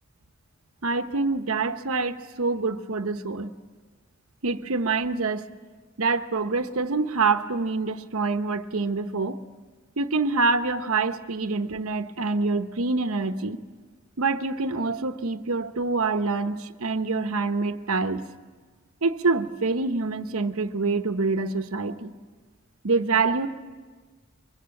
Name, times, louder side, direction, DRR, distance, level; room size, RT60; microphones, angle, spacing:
voice 1, 0.8-3.5 4.4-5.5 6.0-9.4 10.0-13.6 14.2-18.2 19.0-22.1 22.8-23.5, right 3 dB, 75° right, 1.0 m, -26 dB
23.0 x 23.0 x 7.7 m
head